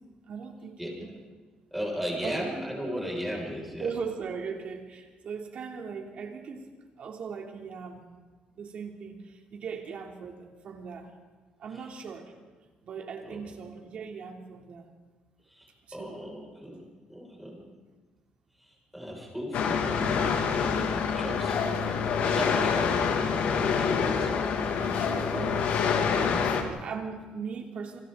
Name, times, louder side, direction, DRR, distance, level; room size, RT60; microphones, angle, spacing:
voice 1, 0.3-1.2 2.2-2.5 3.8-6.7 7.0-8.0 8.6-11.1 11.6-12.3 12.8-14.9 15.9-16.2 24.5-28.0, right 6 dB, 50° right, 2 dB, 3.3 m, -39 dB
voice 2, 1.7-3.9 13.2-13.4 15.5-16.8 17.1-17.6 18.9-24.4 25.3-25.5, equal, 5° right, -2 dB, 6.6 m, -36 dB
sound 1, 19.5-26.6, left 6 dB, 70° left, 2.6 m, -26 dB
28.5 x 25.5 x 4.1 m, 1.3 s
cardioid pair, 145°, 3 cm